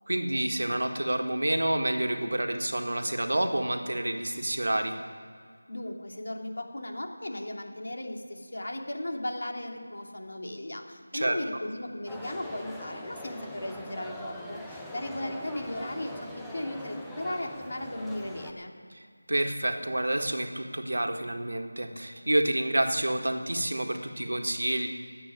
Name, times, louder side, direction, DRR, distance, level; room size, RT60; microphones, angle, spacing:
voice 1, 0.1-5.0 11.1-11.4 18.9-19.0 19.3-24.9, right 1 dB, 80° right, 5 dB, 1.8 m, -28 dB
voice 2, 5.7-18.8, left 1 dB, 70° left, 3 dB, 2.5 m, -36 dB
sound 1, 12.1-18.5, equal, ahead, 0.7 m, -42 dB
13.5 x 8.7 x 10.0 m, 2.1 s
figure-of-eight pair, 175°, 0 cm